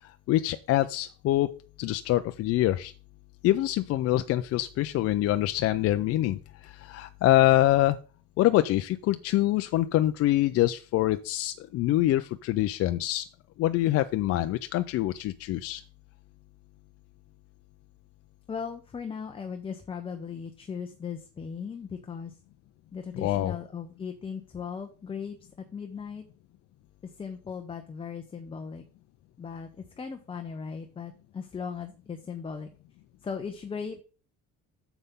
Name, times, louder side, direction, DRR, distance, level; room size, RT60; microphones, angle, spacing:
voice 1, 0.0-1.5 1.8-2.9 3.4-8.0 8.4-13.3 13.6-15.8 23.1-23.6, left 15 dB, 55° left, 9 dB, 0.5 m, -25 dB
voice 2, 18.5-22.4 22.9-26.2 27.0-28.8 29.4-32.7 33.2-34.0, left 6 dB, 20° left, 6 dB, 0.7 m, -38 dB
9.5 x 7.0 x 3.6 m, 0.37 s
cardioid pair, 160°, 29 cm